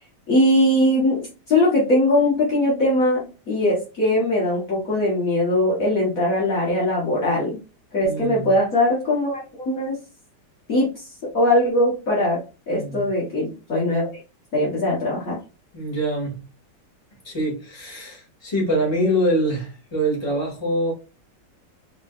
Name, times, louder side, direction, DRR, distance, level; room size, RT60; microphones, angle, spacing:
voice 1, 0.3-7.6 7.9-10.0 10.7-10.9 11.3-12.4 12.7-14.1 14.5-15.4, left 1 dB, 50° left, -6 dB, 1.8 m, -20 dB
voice 2, 8.0-8.5 12.7-13.1 15.7-16.4 17.2-20.9, equal, 15° left, -3 dB, 2.3 m, -24 dB
4.8 x 3.7 x 2.5 m, 0.33 s
omnidirectional pair, 1.9 m